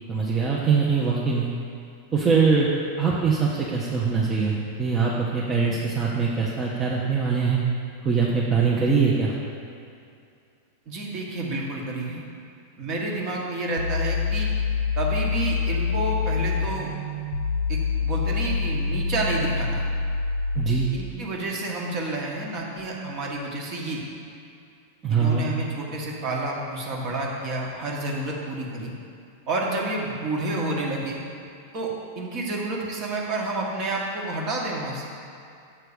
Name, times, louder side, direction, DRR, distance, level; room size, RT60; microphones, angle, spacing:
voice 1, 0.0-1.5 2.1-2.7 3.0-7.6 8.0-9.3 20.5-20.9 25.0-25.5, right 5 dB, 20° right, -5 dB, 0.9 m, -22 dB
voice 2, 10.9-12.2 12.8-14.5 15.0-16.9 17.7-19.8 20.9-24.0 25.1-28.9 29.5-31.2 31.7-35.1, right 2 dB, 40° right, -2 dB, 1.4 m, -29 dB
sound 1, 13.8-20.9, left 5 dB, 75° left, 0.4 m, -26 dB
7.2 x 4.5 x 6.8 m, 2.5 s
figure-of-eight pair, 90°, 0 cm